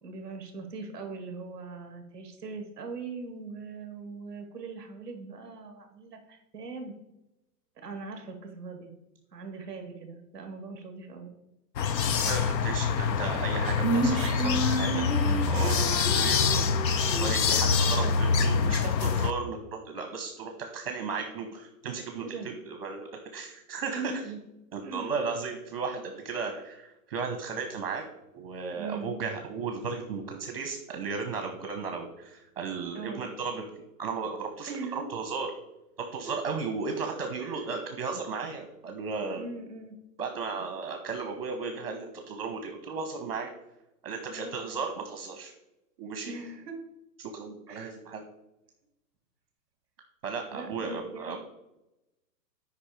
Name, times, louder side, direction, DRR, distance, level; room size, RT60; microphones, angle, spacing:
voice 1, 0.0-6.9 7.8-8.9 9.3-11.3 15.2-15.6 22.2-22.5 23.9-24.4 24.8-25.1 26.5-26.6 28.7-29.1 32.9-33.3 34.7-35.1 37.4-37.6 39.4-40.0 44.3-44.7 46.2-46.8 47.7-47.9 50.5-51.4, right 4 dB, 5° right, 5 dB, 1.5 m, -40 dB
sound 1, 11.8-19.3, left 5 dB, 90° left, 0.9 m, -25 dB
voice 2, 12.3-15.0 15.5-16.7 17.1-24.1 24.7-28.0 28.3-35.5 36.0-39.4 40.2-43.5 44.0-45.5 46.0-46.3 47.3-48.2 50.2-51.4, right 4 dB, 35° right, 5 dB, 1.1 m, -35 dB
Female singing, 13.8-17.3, right 2 dB, 20° left, 1.3 m, -31 dB
9.7 x 5.3 x 5.0 m, 0.92 s
hypercardioid pair, 175°, 49 cm